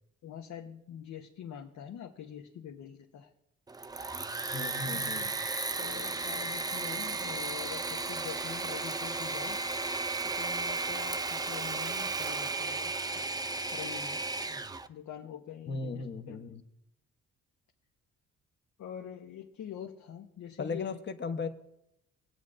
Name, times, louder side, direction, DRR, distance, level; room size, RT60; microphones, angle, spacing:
voice 1, 0.2-3.3 4.9-5.0 5.8-9.6 10.2-13.3 13.7-14.2 14.9-16.4 18.8-20.9, left 9 dB, 70° left, 3 dB, 0.9 m, -45 dB
Engine / Mechanisms, 3.7-14.9, right 3 dB, 15° right, 0.4 m, -34 dB
voice 2, 4.5-5.3 15.7-16.6 20.6-21.5, left 4 dB, 35° left, 8 dB, 0.9 m, -36 dB
20.0 x 8.4 x 2.5 m, 0.83 s
cardioid pair, 90°, 30 cm